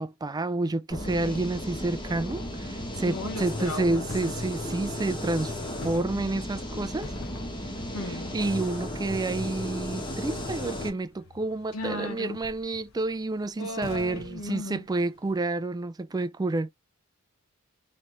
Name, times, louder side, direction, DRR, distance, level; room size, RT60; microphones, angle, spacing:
voice 1, 0.0-5.5 5.8-7.1 8.0-16.7, right 2 dB, 20° right, 0.4 m, -29 dB
sound 1, 0.9-10.9, left 1 dB, 20° left, 1.1 m, -35 dB
voice 2, 1.2-1.6 3.0-4.1 7.9-8.4 11.7-12.4 13.6-14.8, left 1 dB, 85° left, 1.5 m, -36 dB
sound 2, 2.9-15.3, left 3 dB, 65° left, 0.9 m, -48 dB
4.0 x 3.2 x 3.4 m
head